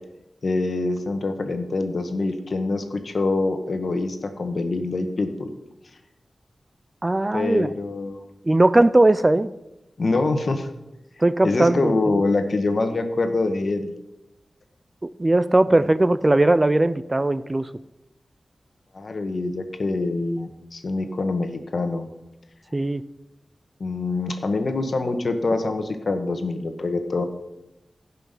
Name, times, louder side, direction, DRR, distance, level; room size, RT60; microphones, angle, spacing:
voice 1, 0.4-5.5 7.3-8.2 10.0-10.7 11.4-13.9 18.9-22.1 23.8-27.2, left 3 dB, 60° left, 7 dB, 1.4 m, -25 dB
voice 2, 7.0-7.7 8.5-9.5 11.2-12.2 15.0-17.7 22.7-23.0, right 2 dB, 25° right, 16 dB, 0.4 m, -19 dB
16.0 x 5.8 x 5.7 m, 0.94 s
wide cardioid pair, 75°, 0 cm